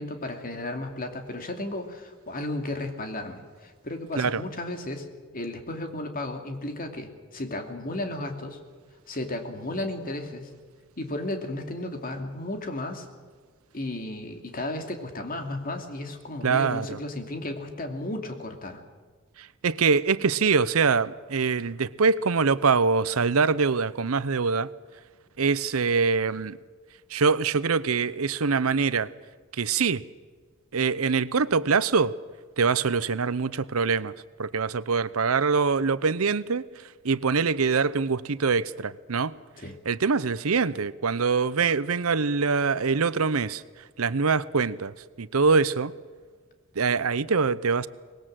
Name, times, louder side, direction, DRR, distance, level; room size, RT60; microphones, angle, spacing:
voice 1, 0.0-5.1 5.3-8.6 9.1-10.5 11.0-13.1 13.7-18.8 39.6-39.7, left 1 dB, 45° left, 5 dB, 2.7 m, -34 dB
voice 2, 16.4-17.0 19.4-24.7 25.4-26.6 27.1-29.1 29.5-30.0 30.7-32.1 32.6-34.1 34.4-36.6 37.0-39.3 39.9-43.6 44.0-45.9 46.8-47.9, right 5 dB, 85° right, 17 dB, 0.7 m, -24 dB
24.0 x 20.0 x 7.7 m, 1.5 s
head